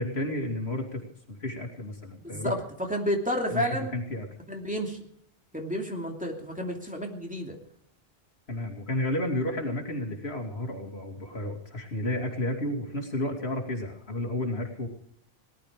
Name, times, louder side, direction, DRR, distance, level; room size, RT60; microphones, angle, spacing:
voice 1, 0.0-2.5 3.5-4.3 8.5-14.9, left 1 dB, 80° left, 2 dB, 3.0 m, -32 dB
voice 2, 2.2-2.6 2.9-4.0 4.5-5.0 5.5-7.6, equal, 5° right, 0 dB, 2.7 m, -30 dB
19.0 x 12.5 x 5.0 m, 0.68 s
omnidirectional pair, 1.1 m